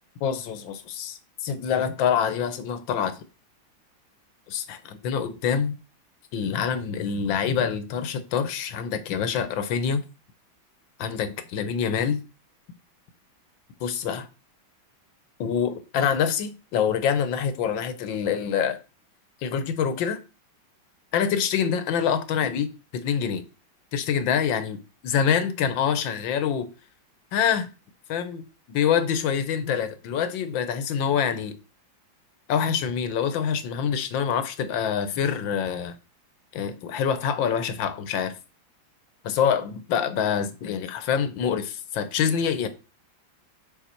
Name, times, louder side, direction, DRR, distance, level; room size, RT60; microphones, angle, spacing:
voice 1, 0.2-3.2 4.5-5.7 6.3-10.0 11.0-12.2 13.8-14.3 15.4-18.8 19.4-20.2 21.1-23.4 23.9-26.7 27.3-27.7 28.1-31.6 32.5-35.9 36.5-38.3 39.2-42.7, left 7 dB, 70° left, 1.5 m, -26 dB
7.2 x 4.3 x 4.4 m
omnidirectional pair, 2.2 m